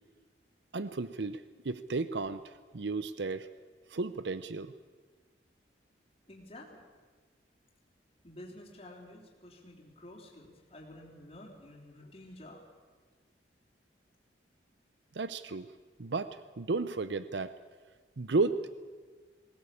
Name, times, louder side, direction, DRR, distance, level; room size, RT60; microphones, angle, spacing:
voice 1, 0.7-3.5 3.9-4.7 15.1-15.7 16.0-17.5 18.2-18.7, right 3 dB, 80° right, 14 dB, 0.7 m, -33 dB
voice 2, 6.3-6.8 8.2-12.6, left 1 dB, 35° left, -3 dB, 3.8 m, -50 dB
20.5 x 17.5 x 8.5 m, 1.5 s
head